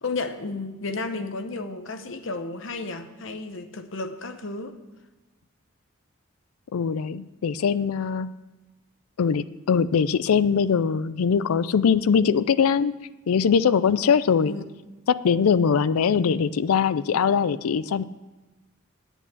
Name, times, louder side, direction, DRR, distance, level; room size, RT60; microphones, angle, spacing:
voice 1, 0.0-4.8 14.5-14.6 16.1-16.4, left 3 dB, 60° left, 8 dB, 0.8 m, -33 dB
voice 2, 6.7-8.3 9.2-12.9 13.3-14.5 15.1-18.0, left 6 dB, 85° left, 17 dB, 0.4 m, -22 dB
8.4 x 8.1 x 7.2 m, 1.1 s
head